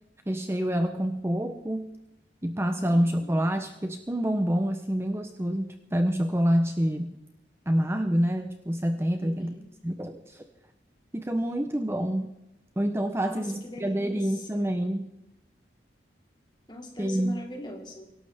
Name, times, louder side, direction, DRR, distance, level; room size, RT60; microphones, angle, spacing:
voice 1, 0.3-1.9 2.4-7.1 7.7-9.6 9.8-10.5 11.1-12.3 12.8-15.1 17.0-17.3, equal, 15° right, 7 dB, 0.7 m, -27 dB
voice 2, 2.8-3.4 9.2-9.7 13.2-14.8 16.7-18.1, left 1 dB, 25° left, 2 dB, 2.5 m, -42 dB
24.0 x 12.0 x 3.5 m, 0.91 s
head